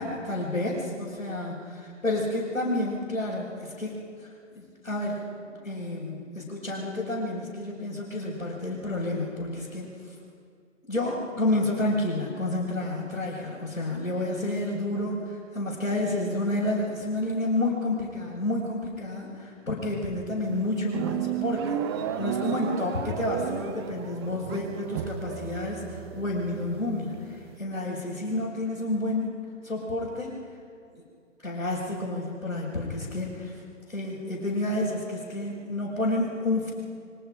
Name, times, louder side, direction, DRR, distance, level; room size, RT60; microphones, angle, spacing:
voice 1, 0.0-3.9 4.5-5.2 5.6-10.1 10.8-30.3 30.9-31.0 31.4-33.5 33.9-36.7, left 1 dB, 80° left, -6 dB, 6.0 m, -30 dB
sound 1, 20.4-27.6, right 9 dB, 20° right, 0.8 m, -33 dB
27.0 x 24.5 x 5.1 m, 2.3 s
figure-of-eight pair, 135°, 39 cm